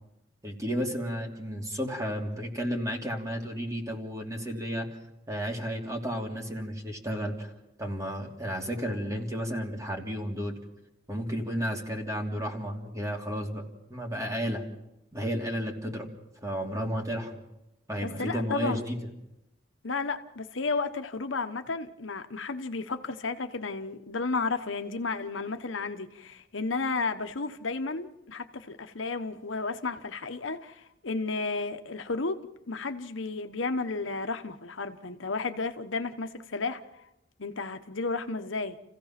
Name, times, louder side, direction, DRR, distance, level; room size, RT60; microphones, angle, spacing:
voice 1, 0.4-4.9 5.3-7.5 7.8-10.6 11.1-13.6 13.9-14.6 15.1-16.1 16.4-17.4 17.9-19.0, equal, 20° right, 2.8 m, -32 dB
voice 2, 18.0-18.8 19.8-32.4 32.7-36.8 37.4-38.8, left 3 dB, 90° left, 1.1 m, -33 dB
29.5 x 16.0 x 6.0 m
head